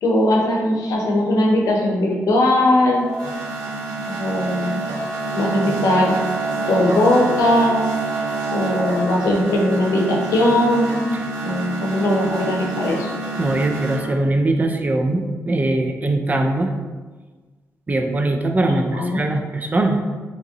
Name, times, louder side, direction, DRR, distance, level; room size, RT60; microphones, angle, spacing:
voice 1, 0.0-3.0 4.1-4.8 5.3-6.2 6.7-7.8 8.5-11.0 11.4-13.1 18.7-19.2, left 1 dB, 75° left, -1 dB, 0.7 m, -19 dB
sound 1, 2.9-14.0, right 3 dB, 75° right, 0.8 m, -27 dB
voice 2, 13.4-16.7 17.9-20.0, right 2 dB, 30° right, 4 dB, 0.4 m, -21 dB
3.5 x 2.9 x 2.7 m, 1.3 s
cardioid pair, 80°, 6 cm